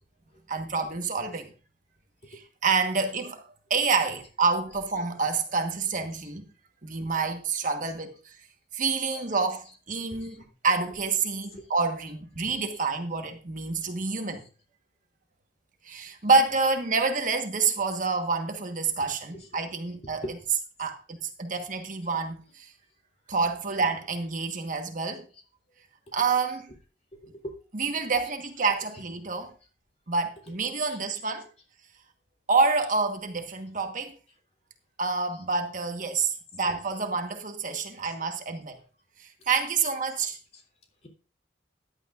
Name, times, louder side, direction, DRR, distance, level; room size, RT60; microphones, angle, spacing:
voice 1, 0.5-1.5 2.3-3.4 3.7-6.4 6.8-8.3 8.7-14.4 15.8-20.4 20.8-22.7 23.3-25.2 26.1-26.7 27.7-29.5 30.1-31.5 32.5-34.1 35.0-38.8 39.2-40.4, right 4 dB, 45° right, 1.3 m, -28 dB
voice 2, 9.1-9.4 10.1-10.4 10.9-11.0 11.5-11.7 12.7-12.9 19.0-19.6 20.0-20.3 27.2-27.5 28.1-28.3 28.7-28.8 30.4-30.5 30.9-31.0 36.6-36.8 38.0-38.1 39.8-39.9 40.5-40.6, equal, 35° left, 3.3 m, -43 dB
15.0 x 11.0 x 2.5 m
head